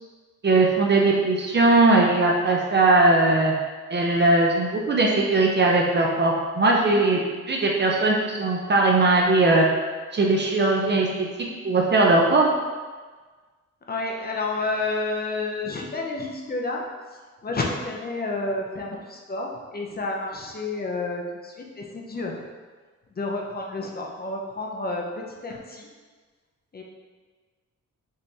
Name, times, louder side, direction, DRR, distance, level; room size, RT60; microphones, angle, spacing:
voice 1, 0.4-3.5 3.9-7.2 7.5-9.7 10.1-11.1 11.6-12.5, right 2 dB, 35° right, -1 dB, 0.5 m, -19 dB
voice 2, 13.9-16.8 17.4-22.4 23.2-25.9 26.7-26.8, left 2 dB, 30° left, 0 dB, 0.5 m, -30 dB
5.4 x 3.3 x 2.7 m, 1.4 s
wide cardioid pair, 135°, 30 cm